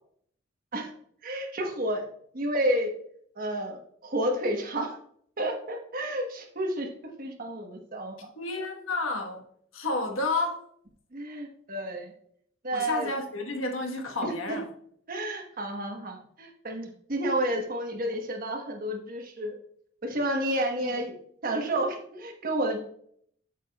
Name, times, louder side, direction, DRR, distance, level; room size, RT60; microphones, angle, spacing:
voice 1, 1.2-2.0 2.3-2.9 3.4-5.0 5.4-6.9 7.2-8.3 11.1-12.1 12.6-13.1 14.2-14.6 15.1-19.6 20.0-21.2 21.4-22.8, right 1 dB, 45° right, 1.2 m, -30 dB
voice 2, 8.4-9.4 9.7-10.6 12.7-14.7 20.8-21.0, left 2 dB, 85° left, 1.3 m, -31 dB
8.1 x 7.2 x 2.3 m
head